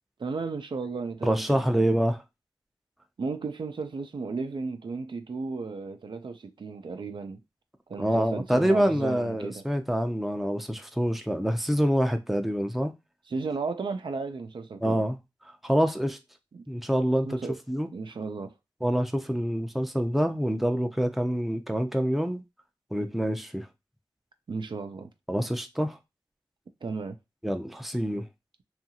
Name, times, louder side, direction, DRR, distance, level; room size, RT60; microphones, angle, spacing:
voice 1, 0.2-1.9 3.2-7.4 7.9-9.6 13.3-15.0 16.5-16.7 17.2-17.5 17.9-18.5 24.5-25.1 26.8-27.2, right 4 dB, 65° right, 0.4 m, -34 dB
voice 2, 1.2-2.2 8.0-12.9 14.8-15.2 15.6-16.2 16.7-17.4 17.7-17.9 18.8-22.4 22.9-23.7 25.3-26.0 27.4-28.3, equal, ahead, 0.5 m, -26 dB
2.7 x 2.4 x 2.7 m
wide cardioid pair, 55°, 9 cm